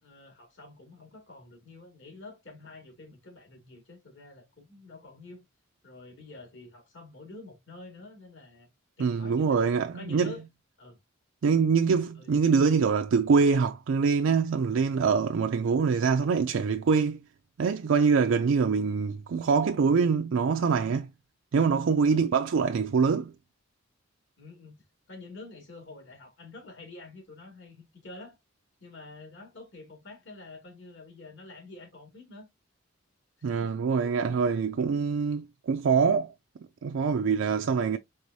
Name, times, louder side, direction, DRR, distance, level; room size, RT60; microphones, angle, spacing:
voice 1, 0.0-5.4 5.8-8.7 9.0-9.6 9.9-10.4 10.8-11.0 12.1-12.3 22.1-22.3 24.4-24.8 25.1-28.4 28.8-32.5 33.4-33.8 37.3-37.6, left 2 dB, 60° left, 2.3 m, -48 dB
voice 2, 9.0-10.3 11.4-17.2 17.6-21.1 21.5-23.3 33.4-36.3 36.8-38.0, right 5 dB, 70° right, 0.4 m, -24 dB
4.7 x 3.5 x 2.6 m
head